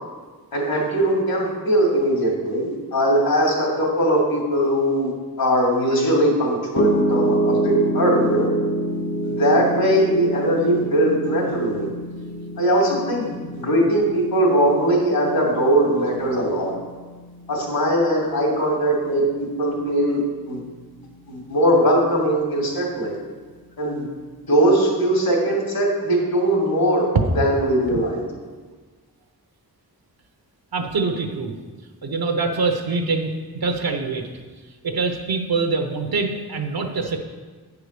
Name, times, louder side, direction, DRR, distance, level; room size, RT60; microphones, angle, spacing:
voice 1, 0.5-5.1 5.4-8.5 9.2-11.9 12.6-16.7 17.5-20.6 21.3-23.2 23.8-24.0 24.5-27.1 27.4-28.2, right 1 dB, 65° left, -1 dB, 2.7 m, -20 dB
Piano, 6.8-18.9, right 1 dB, 30° left, 0.8 m, -27 dB
voice 2, 30.7-31.5 32.0-34.3 34.8-37.2, right 4 dB, 65° right, 4 dB, 1.0 m, -24 dB
9.0 x 4.8 x 6.7 m, 1.4 s
wide cardioid pair, 90°, 39 cm